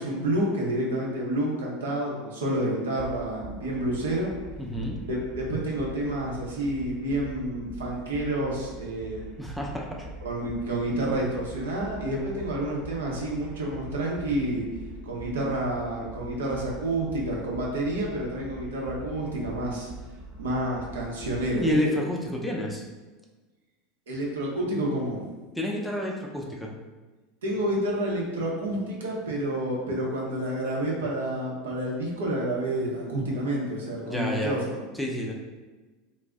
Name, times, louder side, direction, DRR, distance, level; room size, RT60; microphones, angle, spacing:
voice 1, 0.0-4.3 5.1-9.2 10.2-14.6 15.0-19.9 20.4-22.0 24.1-25.3 27.4-34.8, right 1 dB, 80° right, -3 dB, 0.7 m, -29 dB
sound 1, 3.0-21.8, right 2 dB, 45° right, 0.8 m, -43 dB
voice 2, 4.6-5.0 9.4-10.1 21.6-22.9 25.6-26.7 34.1-34.6 35.0-35.3, left 1 dB, 5° left, -2 dB, 0.5 m, -29 dB
2.5 x 2.0 x 3.5 m, 1.2 s
hypercardioid pair, 80°, 0 cm